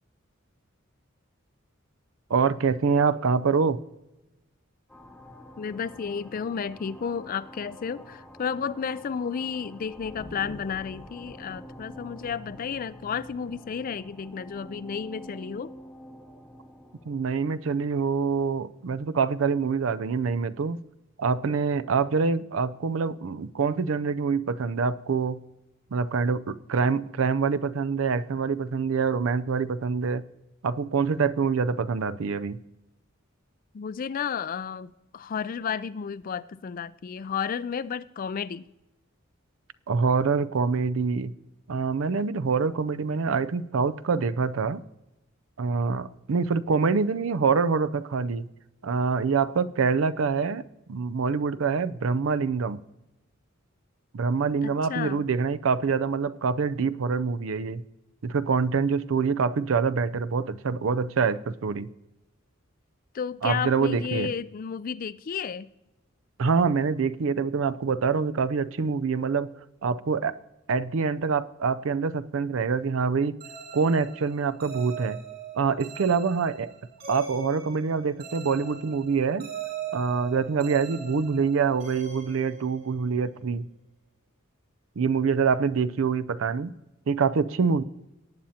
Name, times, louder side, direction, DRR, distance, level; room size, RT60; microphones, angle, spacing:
voice 1, 2.3-3.8 17.1-20.8 21.2-25.4 25.9-30.2 30.6-32.6 39.9-41.3 41.7-44.8 45.6-48.5 48.8-50.6 50.9-52.8 54.1-57.8 58.2-61.9 63.4-64.3 66.4-69.5 69.8-70.4 70.7-73.4 73.7-75.2 75.6-76.7 77.1-79.5 79.9-83.7 85.0-86.7 87.1-87.8, right 5 dB, 75° right, 0.5 m, -25 dB
sound 1, 4.9-19.0, equal, 5° left, 1.0 m, -47 dB
voice 2, 5.6-15.7 33.7-38.7 54.6-55.2 63.1-65.7, left 6 dB, 45° left, 0.4 m, -32 dB
sound 2, 73.4-83.2, right 5 dB, 50° right, 4.6 m, -40 dB
18.5 x 8.9 x 2.8 m
head